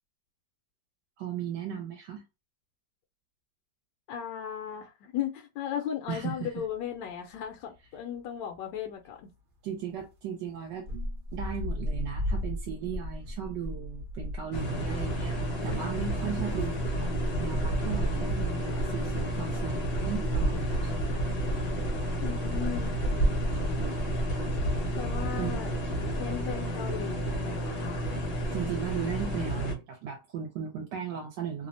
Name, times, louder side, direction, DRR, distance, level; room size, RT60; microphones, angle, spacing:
voice 1, 1.2-2.2 6.1-6.5 9.6-10.9 11.3-17.1 17.4-21.1 25.4-25.6 28.5-31.7, right 8 dB, 80° right, 1.3 m, -36 dB
voice 2, 4.1-9.3 22.2-22.9 25.0-25.7 26.2-28.1, left 9 dB, 80° left, 1.2 m, -36 dB
sound 1, 6.0-6.8 7.1-7.2 7.4-8.0 8.5-8.8 9.1-9.2 9.9-10.1 10.7-15.5 15.7-17.4 17.8-17.9, left 1 dB, 60° right, 0.5 m, -36 dB
sound 2, 14.5-29.7, equal, 50° left, 0.7 m, -30 dB
3.2 x 2.0 x 2.5 m
omnidirectional pair, 1.9 m